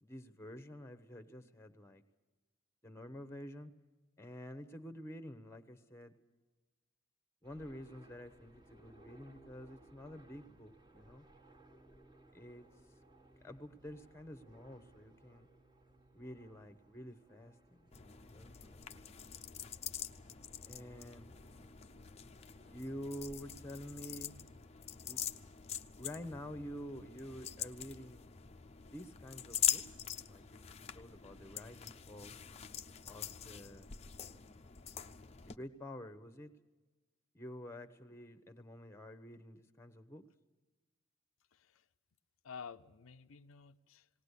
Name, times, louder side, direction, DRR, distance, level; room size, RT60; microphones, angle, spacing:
voice 1, 0.0-2.0 2.8-3.7 4.2-6.1 7.4-11.2 12.3-12.7 13.4-15.5 16.1-18.5 20.7-21.4 22.7-24.3 25.0-25.3 26.0-28.3 28.9-29.8 30.3-30.6 30.9-32.3 33.1-33.9 35.5-36.5 37.3-40.2, equal, 10° left, 11 dB, 1.0 m, -49 dB
sound 1, 7.4-25.0, right 2 dB, 20° right, 1.4 m, -64 dB
sound 2, 17.9-35.6, left 9 dB, 30° left, 0.6 m, -43 dB
voice 2, 41.5-41.9 42.4-44.1, left 6 dB, 75° left, 9 dB, 0.6 m, -51 dB
19.0 x 18.5 x 8.3 m, 1.2 s
head